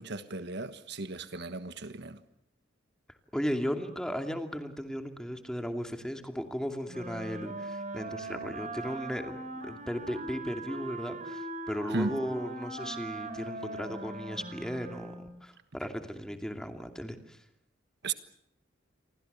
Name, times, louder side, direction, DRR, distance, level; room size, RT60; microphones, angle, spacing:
voice 1, 0.0-2.2 11.9-12.1 18.0-18.1, right 3 dB, 60° right, 1.4 m, -35 dB
voice 2, 3.3-9.4 9.6-17.4, equal, 5° left, 2.6 m, -36 dB
Wind instrument woodwind instrument, 6.9-15.4, right 2 dB, 40° right, 4.5 m, -40 dB
29.0 x 24.0 x 6.8 m
head